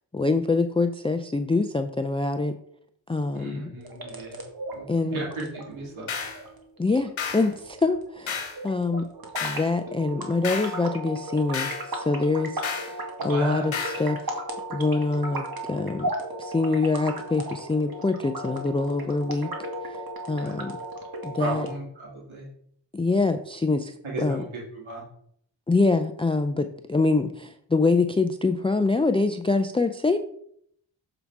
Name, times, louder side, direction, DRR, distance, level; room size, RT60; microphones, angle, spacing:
voice 1, 0.1-2.5 3.1-3.7 4.9-5.2 6.8-9.1 9.4-14.4 14.7-16.1 16.4-19.5 19.9-20.0 20.3-20.8 21.2-21.7 22.9-24.4 25.7-30.2, left 3 dB, 10° left, 8 dB, 0.4 m, -25 dB
voice 2, 3.3-4.4 4.7-6.1 13.2-13.7 20.3-20.6 21.4-22.4 24.0-25.0, right 2 dB, 80° right, -4 dB, 2.2 m, -34 dB
Filterpinged Mallet, 3.8-21.8, right 1 dB, 50° right, 1.9 m, -36 dB
sound 1, 6.1-6.4 7.2-7.5 8.3-8.6 9.3-9.7 10.4-10.8 11.5-11.9 12.6-12.9 13.7-14.0, left 6 dB, 85° left, 1.3 m, -31 dB
7.1 x 4.0 x 4.6 m, 0.67 s
cardioid pair, 40°, 47 cm